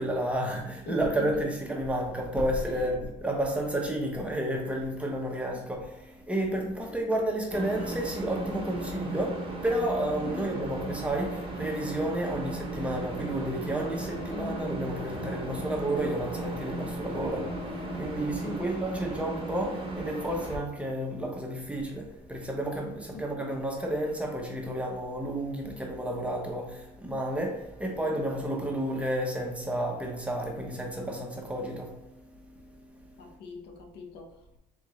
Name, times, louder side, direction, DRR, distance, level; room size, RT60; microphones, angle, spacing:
voice 1, 0.0-5.8 6.1-33.2, right 1 dB, 5° right, 0.9 m, -31 dB
voice 2, 0.9-1.5 2.6-2.9 5.5-5.7 6.8-7.0 10.2-10.5 14.3-14.7 15.6-16.0 18.4-18.8 23.1-23.3 33.2-34.6, left 3 dB, 75° left, 0.7 m, -42 dB
sound 1, 7.5-20.6, right 2 dB, 35° right, 1.1 m, -36 dB
sound 2, 12.6-19.0, left 5 dB, 35° left, 0.8 m, -45 dB
3.7 x 3.5 x 3.1 m
cardioid pair, 110°, 17 cm